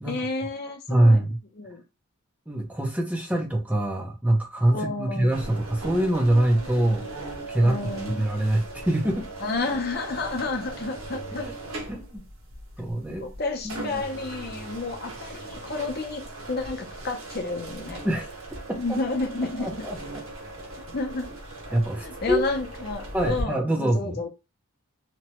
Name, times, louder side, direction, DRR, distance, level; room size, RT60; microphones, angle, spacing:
voice 1, 0.0-1.2 1.5-1.8 4.7-5.3 7.6-8.2 9.4-11.5 13.1-18.0 18.7-19.8 20.9-21.3 22.0-24.3, left 3 dB, 45° left, 0.6 m, -31 dB
voice 2, 0.9-1.4 2.5-7.0 7.5-9.3 11.3-11.5 11.9-12.2 12.8-13.3 13.6-14.0 18.0-18.3 19.6-20.0 21.7-22.5 23.1-24.2, right 1 dB, 5° right, 0.5 m, -24 dB
sound 1, 5.3-23.4, right 2 dB, 85° right, 1.0 m, -38 dB
2.9 x 2.2 x 2.9 m
head